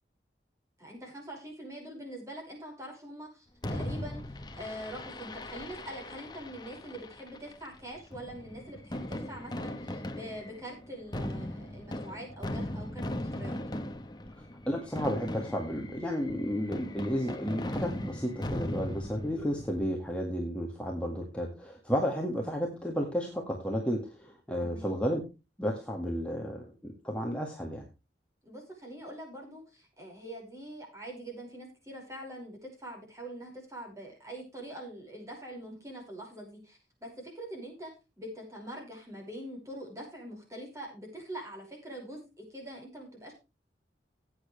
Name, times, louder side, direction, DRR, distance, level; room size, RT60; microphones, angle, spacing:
voice 1, 0.8-13.6 24.6-24.9 28.4-43.3, right 1 dB, 20° right, -1 dB, 5.4 m, -44 dB
Fireworks, 3.6-19.8, left 1 dB, 25° left, 1.1 m, -39 dB
voice 2, 14.7-25.2 25.6-27.9, equal, 5° left, 0 dB, 1.8 m, -32 dB
15.5 x 8.9 x 3.3 m, 0.28 s
head